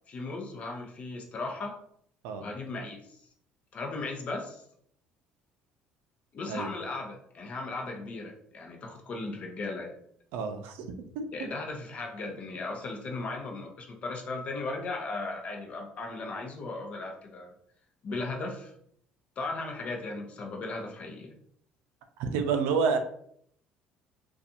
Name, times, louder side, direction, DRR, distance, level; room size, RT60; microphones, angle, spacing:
voice 1, 0.1-1.8 2.4-3.2 3.7-4.6 6.3-10.0 11.3-17.5 18.0-18.7 19.4-21.3, left 3 dB, 40° left, 1 dB, 0.6 m, -37 dB
voice 2, 10.3-10.9 11.2-11.5 22.2-23.0, right 5 dB, 85° right, 7 dB, 0.4 m, -29 dB
2.5 x 2.3 x 2.7 m, 0.67 s
cardioid pair, 125°, 3 cm